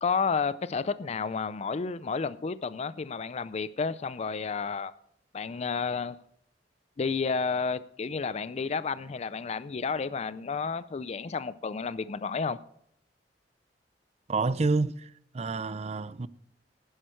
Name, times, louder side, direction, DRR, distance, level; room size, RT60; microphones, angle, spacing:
voice 1, 0.0-4.9 5.3-6.2 7.0-12.6, left 5 dB, 35° left, 0.4 m, -31 dB
voice 2, 14.3-16.3, right 3 dB, 40° right, 0.5 m, -29 dB
11.0 x 11.0 x 4.5 m
head